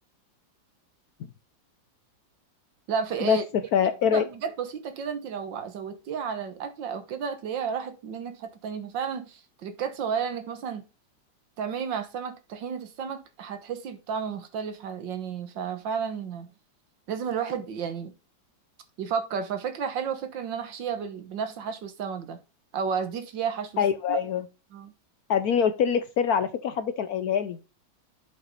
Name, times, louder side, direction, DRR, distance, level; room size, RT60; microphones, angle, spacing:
voice 1, 2.9-3.4 3.8-10.8 11.6-16.5 17.1-18.1 19.0-22.4 22.7-23.8 24.1-24.2 24.7-24.9, right 7 dB, 70° right, 1.8 m, -32 dB
voice 2, 3.7-4.3 23.8-24.4 25.3-27.6, left 7 dB, 65° left, 1.0 m, -24 dB
7.4 x 5.6 x 4.0 m
omnidirectional pair, 2.1 m